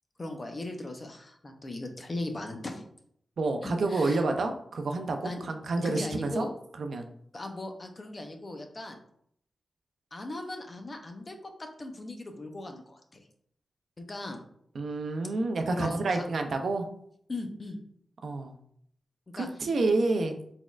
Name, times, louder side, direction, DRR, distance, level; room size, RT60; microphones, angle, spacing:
voice 1, 0.2-2.9 3.6-4.2 5.2-5.4 5.8-6.5 7.3-9.0 10.1-13.2 14.0-14.4 15.7-16.2 17.3-17.8 19.4-19.5, left 2 dB, 30° left, 4 dB, 0.5 m, -38 dB
voice 2, 3.4-6.5 6.8-7.1 14.7-16.9 18.2-18.6 19.3-20.4, right 3 dB, 65° right, 5 dB, 0.4 m, -29 dB
4.2 x 3.5 x 2.3 m, 0.68 s
wide cardioid pair, 110°, 0 cm